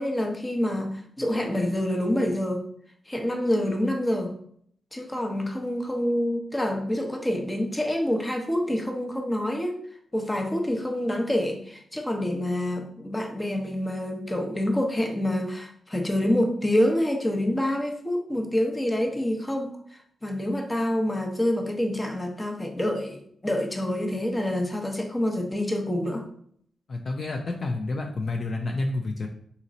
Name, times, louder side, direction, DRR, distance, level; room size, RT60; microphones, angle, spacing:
voice 1, 0.0-2.6 3.1-4.3 4.9-9.8 10.1-26.2, left 1 dB, 20° left, 4 dB, 0.7 m, -27 dB
voice 2, 26.9-29.3, left 2 dB, 55° left, 2 dB, 0.4 m, -29 dB
4.0 x 2.8 x 2.6 m, 0.65 s
cardioid pair, 55°, 0 cm